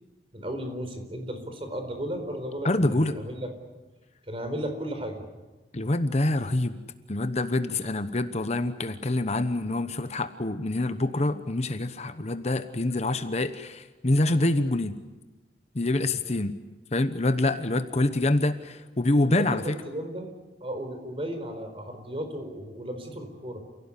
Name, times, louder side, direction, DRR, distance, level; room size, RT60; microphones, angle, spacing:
voice 1, 0.3-3.5 4.3-5.2 7.8-7.9 16.2-16.4 19.2-20.3 20.6-23.6, equal, 35° right, 6 dB, 4.3 m, -35 dB
voice 2, 2.6-3.2 5.7-6.8 7.1-14.9 15.7-16.5 16.9-19.8, left 2 dB, 40° left, 10 dB, 1.0 m, -26 dB
29.0 x 17.0 x 9.9 m, 1.2 s
head